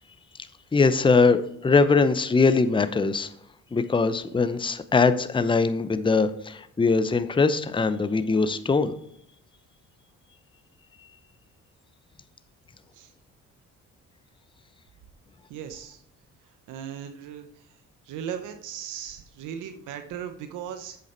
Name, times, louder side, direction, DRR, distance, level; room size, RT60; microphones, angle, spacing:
voice 1, 0.7-3.3 3.7-8.9, left 4 dB, 15° left, 12 dB, 0.6 m, -21 dB
voice 2, 15.5-16.0 16.7-17.8 18.0-21.0, right 8 dB, 90° right, 7 dB, 0.8 m, -37 dB
8.0 x 6.9 x 4.3 m, 0.69 s
cardioid pair, 90°, 30 cm